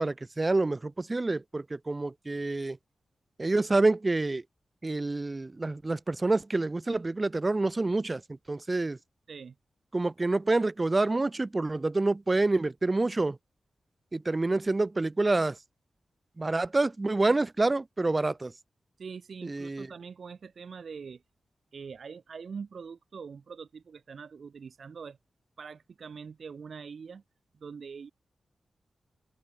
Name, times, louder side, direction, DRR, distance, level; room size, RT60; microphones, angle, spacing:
voice 1, 0.0-2.8 3.4-4.4 4.8-8.2 8.5-9.0 9.9-13.4 14.1-15.5 16.4-18.5 19.4-19.9, right 2 dB, 30° right, 0.6 m, -27 dB
voice 2, 19.0-21.2 21.7-25.2 25.6-27.2 27.6-28.1, right 5 dB, 65° right, 6.0 m, -43 dB
open air
wide cardioid pair, 90°, 0 cm